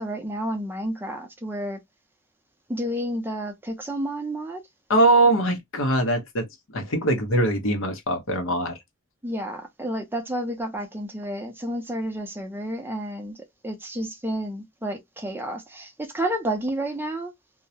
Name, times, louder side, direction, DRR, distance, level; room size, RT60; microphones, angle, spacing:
voice 1, 0.0-1.8 2.7-4.6 9.2-13.4 13.6-17.3, right 1 dB, 10° right, 0.4 m, -30 dB
voice 2, 4.9-6.5 6.7-8.8, right 1 dB, 75° left, 0.8 m, -22 dB
2.3 x 2.0 x 2.6 m
head